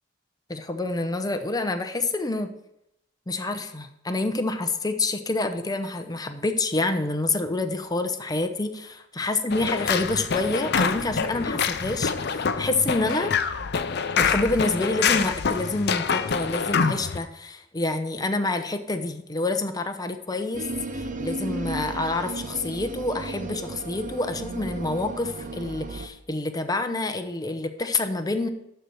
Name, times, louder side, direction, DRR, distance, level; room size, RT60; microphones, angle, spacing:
voice 1, 0.5-2.5 3.3-13.4 14.1-20.7 20.9-28.5, left 2 dB, 20° left, 7 dB, 0.8 m, -27 dB
sound 1, 9.5-17.2, left 6 dB, 60° left, 0.6 m, -26 dB
sound 2, 20.5-26.1, right 2 dB, 45° right, 0.7 m, -34 dB
12.5 x 4.5 x 6.4 m, 0.82 s
head